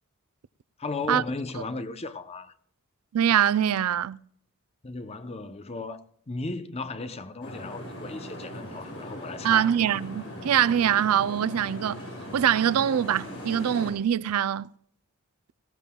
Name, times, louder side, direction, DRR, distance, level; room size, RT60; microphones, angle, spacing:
voice 1, 0.8-2.5 4.8-9.7, left 3 dB, 30° left, 0.7 m, -35 dB
voice 2, 3.1-4.2 9.4-12.0 12.3-14.7, right 9 dB, 80° right, 0.4 m, -23 dB
sound 1, 7.4-13.9, equal, 55° left, 6.2 m, -39 dB
19.0 x 16.0 x 2.3 m
head